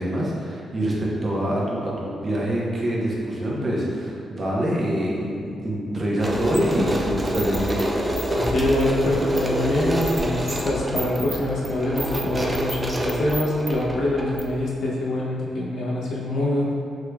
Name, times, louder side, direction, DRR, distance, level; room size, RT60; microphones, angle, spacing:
voice 1, 0.0-7.8, equal, 40° right, -5 dB, 0.8 m, -25 dB
sound 1, 6.2-14.7, right 1 dB, 20° right, 0.4 m, -27 dB
voice 2, 8.3-16.7, left 1 dB, 70° left, -4 dB, 0.7 m, -24 dB
3.7 x 3.2 x 2.3 m, 2.5 s
cardioid pair, 95°, 0 cm